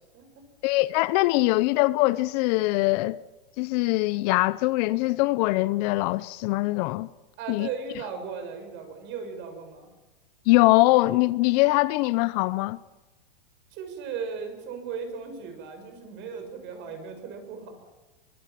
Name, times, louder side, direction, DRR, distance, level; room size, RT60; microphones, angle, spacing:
voice 1, 0.6-3.2 3.6-7.1 7.5-7.7 10.5-12.8, left 20 dB, 45° left, 0.7 m, -22 dB
voice 2, 7.4-9.9 13.7-17.9, right 6 dB, 40° right, 7.1 m, -37 dB
24.0 x 23.0 x 7.6 m
hypercardioid pair, 130°, 29 cm